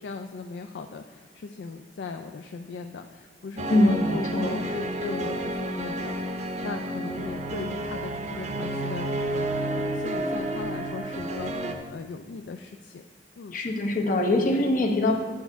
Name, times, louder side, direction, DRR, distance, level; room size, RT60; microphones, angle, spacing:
voice 1, 0.0-13.0 13.4-13.6, left 4 dB, 70° left, 5 dB, 0.3 m, -38 dB
sound 1, 3.6-11.7, right 1 dB, 40° right, 0.6 m, -30 dB
voice 2, 3.7-4.6 13.5-15.1, left 1 dB, 50° left, 2 dB, 0.9 m, -23 dB
9.1 x 6.3 x 3.5 m, 1.5 s
head